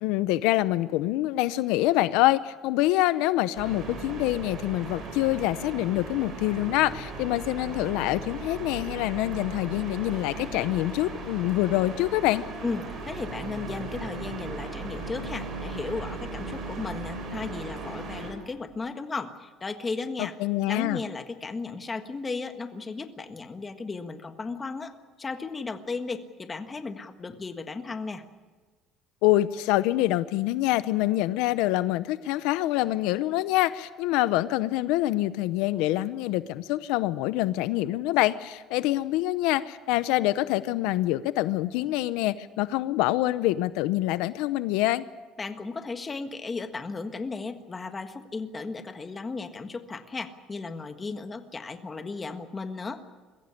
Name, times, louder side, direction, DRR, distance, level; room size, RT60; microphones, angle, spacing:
voice 1, 0.0-12.4 20.2-21.0 29.2-45.0, left 16 dB, 85° left, 15 dB, 0.7 m, -25 dB
sound 1, 3.6-18.3, right 3 dB, 40° right, 6.7 m, -37 dB
voice 2, 12.6-20.3 20.7-24.9 25.2-28.2 45.4-53.0, left 4 dB, 20° left, 8 dB, 1.6 m, -35 dB
22.5 x 16.0 x 10.0 m, 1.3 s
cardioid pair, 135°, 0 cm